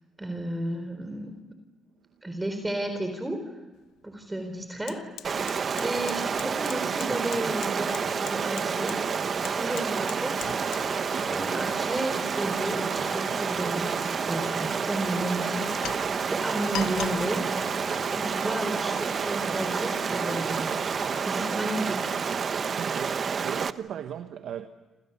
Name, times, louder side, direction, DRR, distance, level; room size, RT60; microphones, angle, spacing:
voice 1, 0.2-1.3 2.2-3.6 4.0-5.4 5.8-9.0 9.4-10.9 11.2-17.4 18.1-22.1 23.1-23.2, right 1 dB, 10° right, 4.1 m, -33 dB
Fire, 3.7-3.9 4.2-21.2, left 12 dB, 85° left, 1.0 m, -44 dB
Stream, 5.2-23.7, right 6 dB, 45° right, 1.1 m, -29 dB
voice 2, 22.6-24.7, right 9 dB, 75° right, 1.2 m, -38 dB
28.5 x 28.0 x 7.0 m
cardioid pair, 90°, 0 cm